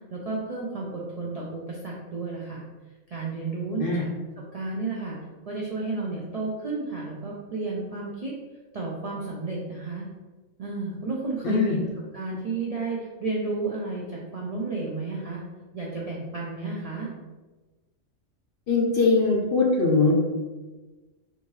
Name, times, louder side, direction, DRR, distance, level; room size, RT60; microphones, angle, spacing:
voice 1, 0.1-2.6 3.1-4.1 4.4-5.2 5.5-8.3 8.7-10.1 10.6-11.8 12.1-15.4 15.7-17.1, right 3 dB, 60° right, -4 dB, 0.4 m, -32 dB
voice 2, 11.4-11.8 18.7-20.1, left 3 dB, 60° left, -1 dB, 0.6 m, -21 dB
3.5 x 2.7 x 3.1 m, 1.2 s
omnidirectional pair, 1.3 m